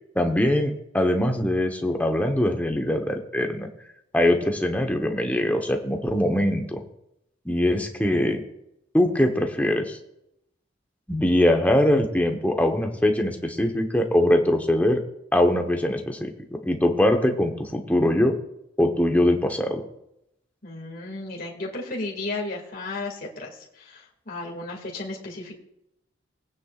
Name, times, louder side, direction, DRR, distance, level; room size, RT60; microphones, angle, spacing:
voice 1, 0.1-3.7 4.1-6.8 7.4-8.4 8.9-10.0 11.1-15.0 15.3-18.4 18.8-19.8, left 1 dB, 10° left, 3 dB, 1.0 m, -22 dB
voice 2, 20.6-25.6, left 2 dB, 50° left, -2 dB, 2.3 m, -34 dB
20.5 x 9.4 x 2.5 m, 0.81 s
head